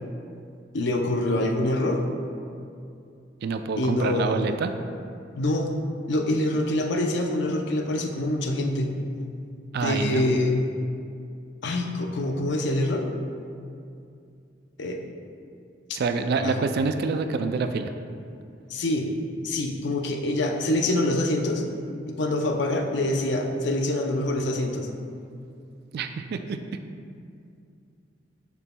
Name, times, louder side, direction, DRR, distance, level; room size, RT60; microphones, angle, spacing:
voice 1, 0.7-2.0 3.8-4.4 5.4-5.7 6.1-8.9 9.8-10.6 11.6-13.1 14.8-15.0 16.4-16.5 18.7-19.1 19.4-21.6 22.2-24.9, left 1 dB, 65° left, 3 dB, 0.6 m, -25 dB
voice 2, 3.4-4.7 9.7-10.3 15.9-17.9 25.9-26.6, right 4 dB, 55° right, 8 dB, 0.3 m, -27 dB
6.8 x 6.1 x 2.2 m, 2.4 s
head